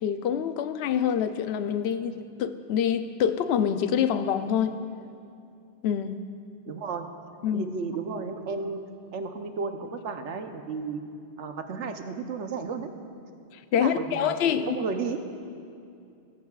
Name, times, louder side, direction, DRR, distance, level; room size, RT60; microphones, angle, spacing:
voice 1, 0.0-4.8 5.8-6.2 7.4-7.7 13.5-14.8, left 8 dB, 70° left, 10 dB, 0.8 m, -26 dB
voice 2, 6.7-7.1 7.5-8.8 9.1-11.0 11.4-12.9 13.8-14.4 14.6-15.2, right 4 dB, 85° right, 6 dB, 1.1 m, -33 dB
18.5 x 14.0 x 2.4 m, 2.5 s
omnidirectional pair, 1.2 m